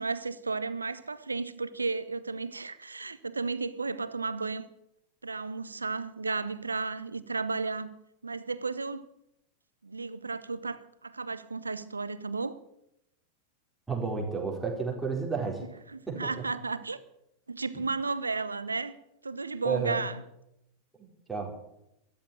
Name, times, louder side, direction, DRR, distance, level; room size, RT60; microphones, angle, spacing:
voice 1, 0.0-4.6 5.2-7.9 8.2-9.1 9.8-12.6 15.9-17.0 17.5-18.9 19.2-20.2, right 4 dB, 80° right, 0.8 m, -33 dB
voice 2, 13.9-15.6 16.1-16.5 19.6-20.0 21.0-21.5, right 5 dB, 10° right, 4.5 m, -32 dB
13.5 x 11.5 x 8.8 m
figure-of-eight pair, 90°, 0 cm